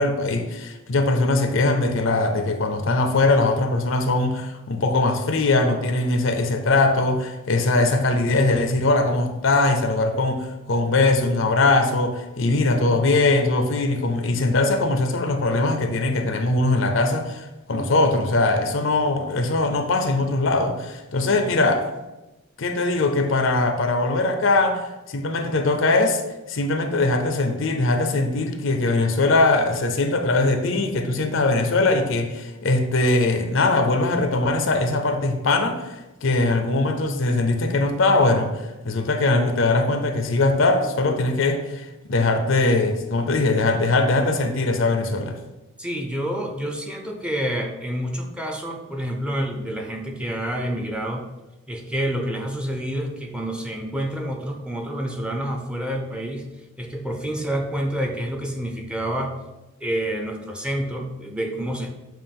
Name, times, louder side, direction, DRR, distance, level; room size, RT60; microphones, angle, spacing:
voice 1, 0.0-21.9 22.6-26.2 26.5-45.4, left 2 dB, 65° left, 0.7 m, -21 dB
voice 2, 45.8-51.3 51.7-56.5 56.8-59.4 59.8-61.9, right 1 dB, 5° right, 0.7 m, -28 dB
7.5 x 2.5 x 5.3 m
head